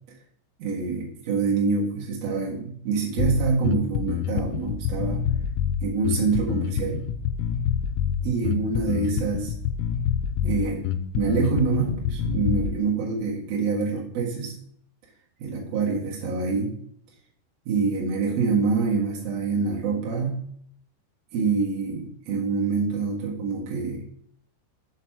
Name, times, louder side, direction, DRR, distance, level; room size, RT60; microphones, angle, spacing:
voice 1, 0.6-5.2 5.8-7.0 8.2-9.5 10.4-10.9 11.1-14.5 15.4-16.7 17.6-20.4 21.3-24.0, right 4 dB, 85° right, -3 dB, 1.5 m, -26 dB
Bass guitar, 3.2-12.8, left 8 dB, 90° left, 3.2 m, -27 dB
6.5 x 5.0 x 6.0 m, 0.66 s
omnidirectional pair, 5.8 m